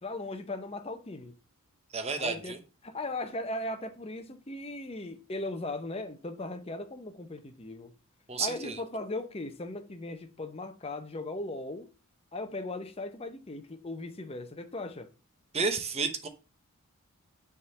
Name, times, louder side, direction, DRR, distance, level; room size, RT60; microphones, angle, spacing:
voice 1, 0.0-1.4 2.2-2.6 2.8-7.9 8.4-11.9 12.3-15.1, left 2 dB, 25° left, 0.7 m, -38 dB
voice 2, 1.9-2.6 8.3-8.8 15.5-16.3, right 4 dB, 25° right, 0.8 m, -31 dB
6.9 x 3.7 x 6.4 m
head